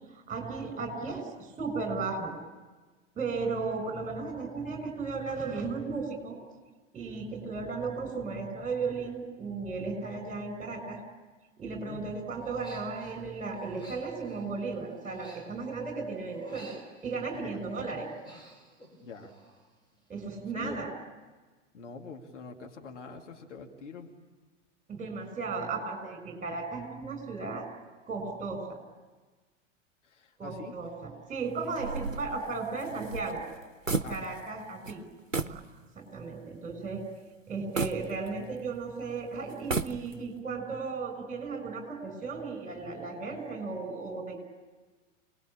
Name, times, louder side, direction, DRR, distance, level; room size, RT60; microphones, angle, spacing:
voice 1, 0.1-2.3 3.2-6.4 6.9-11.0 11.6-16.8 17.0-18.1 20.1-20.9 24.9-27.6 28.1-28.8 30.4-33.4 34.1-35.0 35.3-35.5 35.9-37.0 37.5-44.4, right 4 dB, 20° right, 5 dB, 6.5 m, -35 dB
voice 2, 11.8-12.2 17.3-17.5 19.0-19.3 20.5-20.8 21.7-24.1 30.0-30.7 34.0-34.4, left 5 dB, 70° left, 3 dB, 2.6 m, -44 dB
Human voice, 12.4-13.2 13.5-16.0 16.3-17.5 17.9-19.7 19.9-20.3, right 2 dB, 10° left, 6.2 m, -52 dB
sound 1, 31.8-34.6 34.8-35.0 35.3-35.6 36.1-36.2 37.8-38.8 39.5-40.4, right 4 dB, 90° right, 0.9 m, -34 dB
27.5 x 20.0 x 8.8 m, 1.3 s
figure-of-eight pair, 90°, 38 cm